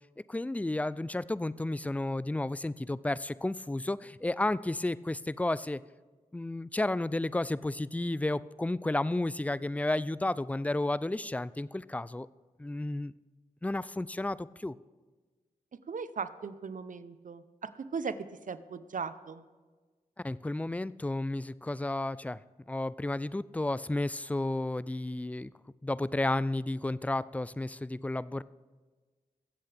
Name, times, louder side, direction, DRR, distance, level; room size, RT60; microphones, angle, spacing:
voice 1, 0.3-5.8 6.3-12.3 12.6-13.1 13.6-14.8 20.2-22.4 22.7-25.5 25.8-28.4, left 2 dB, 10° left, 18 dB, 0.4 m, -32 dB
voice 2, 15.9-18.2 18.5-19.4, right 5 dB, 60° right, 13 dB, 0.7 m, -38 dB
23.0 x 7.7 x 3.5 m, 1.3 s
cardioid pair, 45°, 15 cm